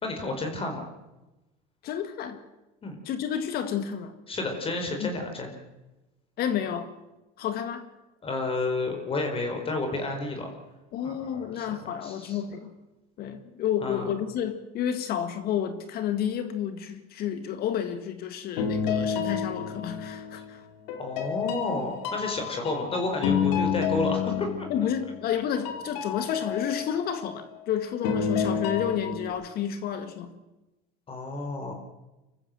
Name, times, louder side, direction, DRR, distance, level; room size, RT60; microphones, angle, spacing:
voice 1, 0.0-0.8 2.8-3.0 4.3-5.5 8.2-10.5 11.0-11.8 12.0-12.4 13.8-14.1 21.0-24.7 31.1-31.7, left 2 dB, 30° left, 4.6 m, -31 dB
voice 2, 1.8-2.4 3.1-4.1 5.0-5.2 6.4-6.9 7.4-7.8 10.9-12.7 13.2-20.6 24.7-30.3, left 9 dB, 55° left, 2.0 m, -30 dB
sound 1, 18.6-20.5 20.9-25.4 25.6-27.6 28.0-29.3, left 7 dB, 80° left, 3.8 m, -30 dB
25.5 x 14.5 x 7.8 m
supercardioid pair, 105°, 19 cm